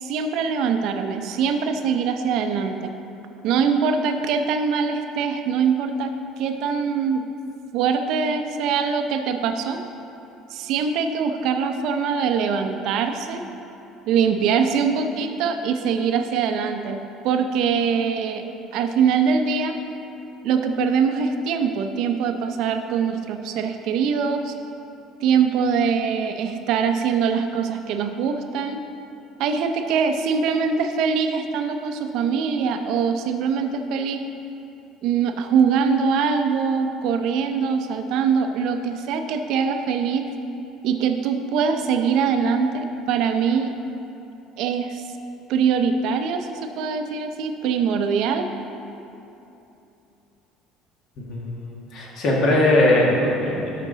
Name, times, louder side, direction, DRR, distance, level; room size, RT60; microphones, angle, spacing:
voice 1, 0.0-2.9 3.4-7.2 7.7-9.8 10.5-13.4 14.1-17.0 17.2-18.4 18.7-19.7 20.4-24.5 25.2-28.8 29.4-34.2 35.0-40.3 40.8-43.7 44.6-45.0 45.5-48.5, right 6 dB, 55° right, 6 dB, 0.6 m, -23 dB
voice 2, 51.2-53.9, left 1 dB, 45° left, -2 dB, 1.7 m, -20 dB
12.0 x 5.9 x 3.9 m, 2.9 s
cardioid pair, 170°, 0 cm